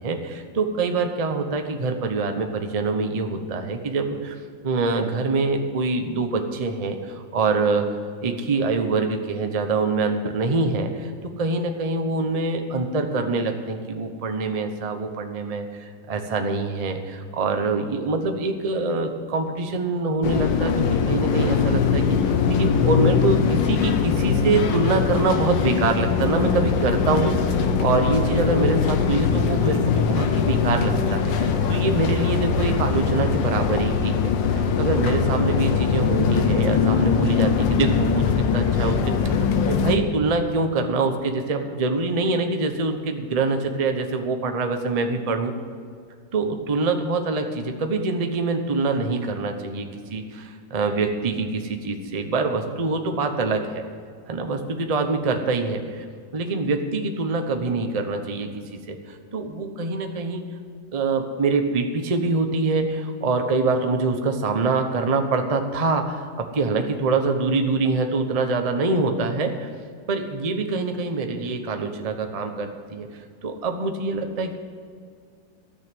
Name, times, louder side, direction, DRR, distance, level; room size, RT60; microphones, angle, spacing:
voice 1, 0.0-4.3 4.6-7.9 8.2-39.1 39.6-45.5 46.3-53.8 54.3-56.0 56.3-60.4 60.9-69.7 70.1-73.1 73.4-74.5, right 3 dB, 30° right, 5 dB, 0.7 m, -25 dB
sound 1, 20.2-40.0, left 6 dB, 80° left, 1.6 m, -21 dB
14.0 x 6.5 x 9.2 m, 2.1 s
omnidirectional pair, 2.0 m